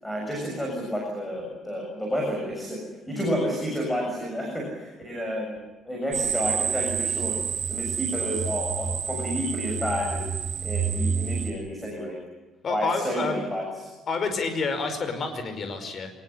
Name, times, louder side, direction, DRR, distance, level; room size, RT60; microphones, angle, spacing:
voice 1, 0.0-2.8 3.1-5.6 5.8-7.4 7.7-10.3 10.6-12.2 12.7-13.7, equal, 5° left, 0 dB, 6.8 m, -30 dB
sound 1, 6.1-11.5, right 7 dB, 45° right, 3.7 m, -28 dB
voice 2, 12.6-13.5 14.1-16.1, left 4 dB, 35° left, 8 dB, 5.1 m, -29 dB
24.5 x 21.0 x 10.0 m, 1.2 s
cardioid pair, 165°, 0 cm